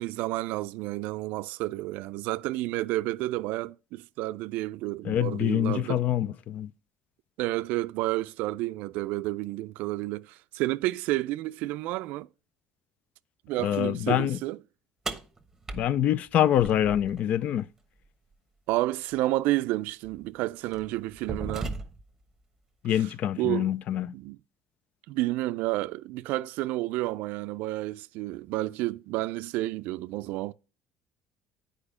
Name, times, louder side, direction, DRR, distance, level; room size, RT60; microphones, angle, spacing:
voice 1, 0.0-6.0 7.4-12.3 13.5-14.6 18.7-21.7 22.9-23.0 23.4-23.7 24.1-24.4 25.1-30.5, right 18 dB, 80° right, 0.3 m, -30 dB
voice 2, 5.0-6.7 13.6-14.4 15.7-17.7 22.8-24.1, left 11 dB, 60° left, 0.4 m, -25 dB
sound 1, 15.1-17.2 19.1-19.2 20.0-20.2 20.7-22.2, right 3 dB, 10° right, 1.1 m, -37 dB
8.8 x 4.9 x 4.9 m
cardioid pair, 120°, 3 cm